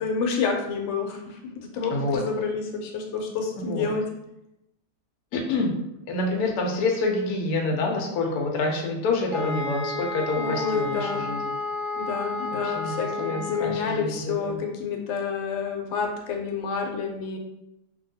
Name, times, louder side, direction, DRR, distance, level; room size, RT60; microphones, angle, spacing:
voice 1, 0.0-4.1 10.3-11.3 11.9-17.4, left 5 dB, 85° left, 3 dB, 1.3 m, -29 dB
voice 2, 1.9-2.2 3.7-3.9 5.3-5.7 6.1-11.4 12.5-14.6, left 3 dB, 70° left, 1 dB, 1.0 m, -27 dB
sound 1, 9.3-14.0, left 2 dB, 10° left, 1.2 m, -32 dB
2.9 x 2.7 x 2.6 m, 0.85 s
omnidirectional pair, 2.1 m